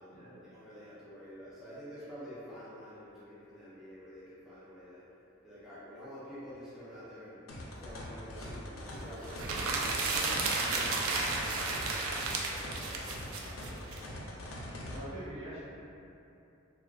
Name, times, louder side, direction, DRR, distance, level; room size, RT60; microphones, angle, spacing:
voice 1, 0.0-5.0 5.4-7.4 7.8-9.8 10.4-14.2, equal, ahead, -12 dB, 0.3 m, -48 dB
sound 1, 7.5-15.0, left 1 dB, 90° left, 0.4 m, -43 dB
sound 2, 9.3-14.0, right 3 dB, 80° right, 0.3 m, -32 dB
voice 2, 14.7-15.6, right 1 dB, 65° right, -14 dB, 1.0 m, -44 dB
2.5 x 2.2 x 2.3 m, 2.8 s
head